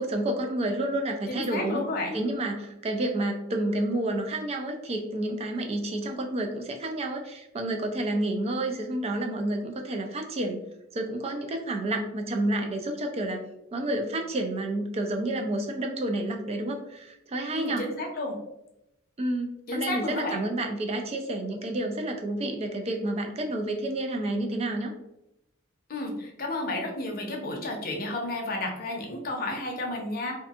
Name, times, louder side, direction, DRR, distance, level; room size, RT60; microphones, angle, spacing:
voice 1, 0.0-1.8 2.1-10.6 10.9-13.5 13.7-17.9 19.2-24.9, right 1 dB, 30° right, 4 dB, 0.3 m, -30 dB
voice 2, 1.3-2.2 17.5-18.4 19.7-20.4 25.9-30.4, left 2 dB, 45° left, 1 dB, 0.6 m, -32 dB
2.6 x 2.4 x 2.3 m, 0.85 s
head